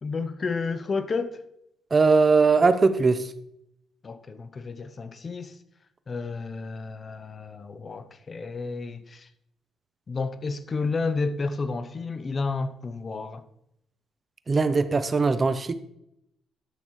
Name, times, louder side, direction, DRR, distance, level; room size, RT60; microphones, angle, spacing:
voice 1, 0.0-1.4 4.0-5.6 6.1-9.3 10.1-13.4, left 4 dB, 35° left, 0.7 m, -31 dB
voice 2, 1.9-3.3 14.5-15.7, right 4 dB, 30° right, 0.7 m, -20 dB
12.0 x 6.6 x 3.1 m
cardioid pair, 90°, 0 cm